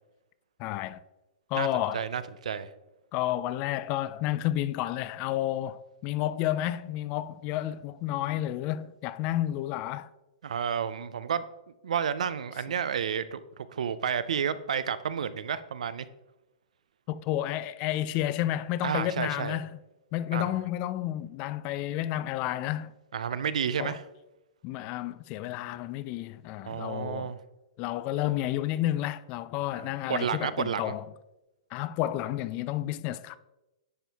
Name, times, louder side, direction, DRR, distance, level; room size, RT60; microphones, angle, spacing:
voice 1, 0.6-1.0 1.5-2.0 3.1-10.1 17.1-19.8 20.1-22.9 23.8-23.9 24.6-27.3 27.8-31.0 31.7-33.3, left 13 dB, 35° left, 0.3 m, -31 dB
voice 2, 1.9-2.7 10.4-11.4 11.8-16.1 18.8-19.6 20.3-20.5 23.1-24.0 26.6-27.4 29.7-30.9, right 7 dB, 90° right, 0.5 m, -31 dB
10.0 x 4.4 x 3.5 m
hypercardioid pair, 145°, 4 cm